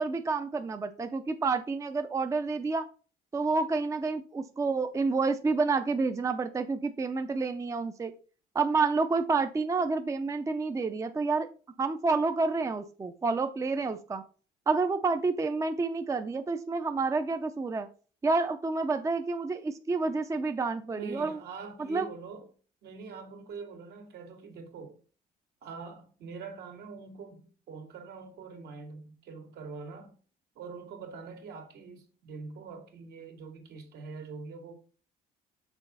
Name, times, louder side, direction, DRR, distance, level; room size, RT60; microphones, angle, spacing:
voice 1, 0.0-2.9 3.3-8.1 8.5-11.5 11.8-14.2 14.7-17.9 18.2-21.4 21.9-22.1, right 4 dB, 20° right, 0.5 m, -29 dB
voice 2, 20.9-22.5 22.8-25.0 25.6-30.2 30.6-34.7, right 4 dB, 70° right, 2.0 m, -44 dB
6.2 x 3.8 x 5.4 m
cardioid pair, 110°, 17 cm